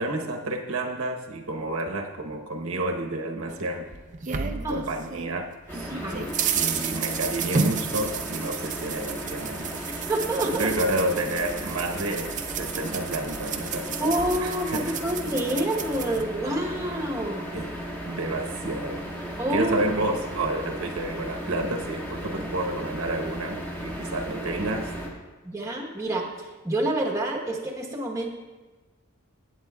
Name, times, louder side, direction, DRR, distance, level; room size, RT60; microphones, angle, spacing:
voice 1, 0.0-3.9 4.3-5.9 6.5-9.7 10.5-14.0 14.4-14.9 17.5-17.7 18.0-19.1 19.5-24.9, right 2 dB, 75° right, 3 dB, 0.9 m, -30 dB
sound 1, 3.5-5.3 5.7-16.2, right 6 dB, 35° right, 0.5 m, -32 dB
sound 2, 5.7-25.1, equal, 10° left, 1.2 m, -35 dB
voice 2, 5.9-6.3 10.1-10.7 14.0-17.4 19.4-19.8 25.4-28.3, right 1 dB, 15° right, 0 dB, 1.0 m, -28 dB
16.0 x 8.0 x 2.3 m, 1.3 s
head